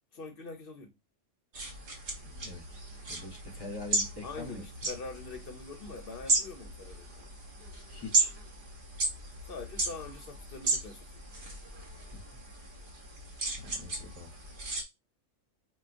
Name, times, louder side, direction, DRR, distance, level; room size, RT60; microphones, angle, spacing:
voice 1, 0.1-0.9 4.2-7.3 9.4-11.2, left 3 dB, 55° left, 0.8 m, -44 dB
sound 1, 1.5-14.8, right 2 dB, 50° right, 0.9 m, -35 dB
voice 2, 2.2-2.8 3.1-4.6 7.9-8.3 12.1-12.2 13.6-14.3, left 3 dB, 20° left, 0.8 m, -44 dB
4.5 x 2.3 x 2.5 m
omnidirectional pair, 1.3 m